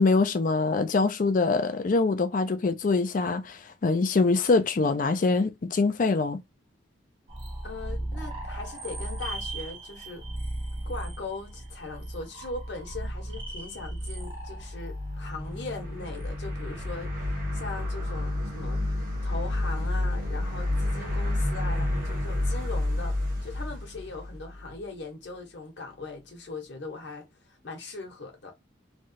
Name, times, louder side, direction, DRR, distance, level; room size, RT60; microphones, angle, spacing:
voice 1, 0.0-6.4, left 3 dB, 40° left, 0.4 m, -24 dB
sound 1, 7.3-16.9, right 1 dB, 25° right, 0.9 m, -37 dB
voice 2, 7.6-10.2 10.8-17.1 17.5-18.8 19.2-23.2 23.4-27.2 27.6-28.5, left 3 dB, 60° left, 1.1 m, -39 dB
sound 2, 14.5-24.7, left 1 dB, 45° right, 1.1 m, -30 dB
3.1 x 2.3 x 2.7 m
head